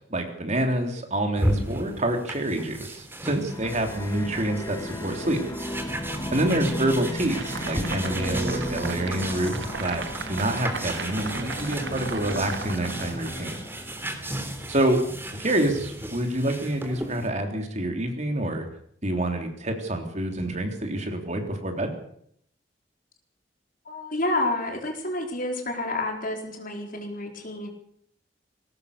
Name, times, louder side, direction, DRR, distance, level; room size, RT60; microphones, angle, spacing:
voice 1, 0.1-5.4 6.3-10.0 10.3-13.6 14.7-15.0 15.4-18.7 19.0-21.9, right 1 dB, 40° right, 5 dB, 3.6 m, -27 dB
sound 1, 1.4-17.3, right 1 dB, 10° right, 3.3 m, -35 dB
sound 2, 3.5-14.1, left 1 dB, 20° left, 1.6 m, -35 dB
sound 3, 7.3-13.5, right 4 dB, 65° right, 1.6 m, -37 dB
voice 2, 23.9-27.7, left 2 dB, 50° left, 3 dB, 4.4 m, -29 dB
21.0 x 18.5 x 6.8 m, 0.67 s
head